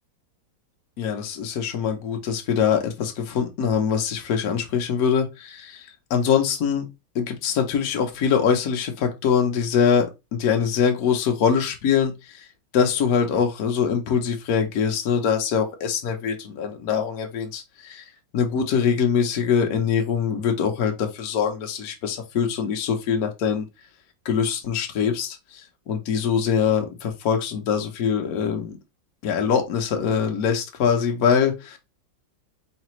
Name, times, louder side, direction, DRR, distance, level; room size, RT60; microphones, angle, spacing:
voice 1, 1.0-6.9 7.1-10.1 10.3-12.5 12.7-23.6 24.2-28.7 29.2-31.8, left 7 dB, 65° left, 1.1 m, -23 dB
4.2 x 3.3 x 3.0 m
omnidirectional pair, 2.0 m